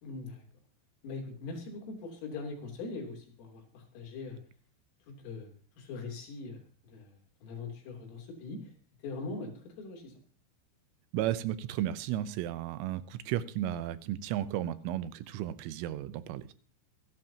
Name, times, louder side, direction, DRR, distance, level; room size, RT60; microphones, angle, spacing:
voice 1, 0.0-0.4 1.0-4.4 5.1-5.5 5.8-8.7 9.0-10.2, left 3 dB, 85° left, 2 dB, 6.0 m, -42 dB
voice 2, 11.1-16.5, right 12 dB, 85° right, 13 dB, 3.4 m, -34 dB
26.5 x 11.5 x 2.9 m, 0.39 s
omnidirectional pair, 5.7 m